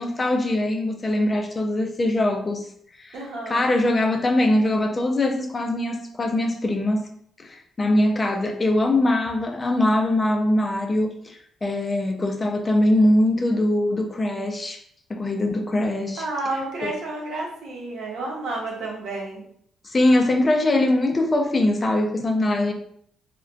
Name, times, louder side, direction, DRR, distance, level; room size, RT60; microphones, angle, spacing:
voice 1, 0.0-2.7 3.0-3.2 3.5-7.1 7.4-14.8 15.1-16.2 16.8-16.9 19.8-22.7, left 1 dB, 30° left, 4 dB, 0.4 m, -22 dB
voice 2, 3.1-3.7 16.2-19.4, right 2 dB, 75° right, -2 dB, 0.8 m, -31 dB
2.4 x 2.1 x 2.4 m, 0.65 s
cardioid pair, 90°, 0 cm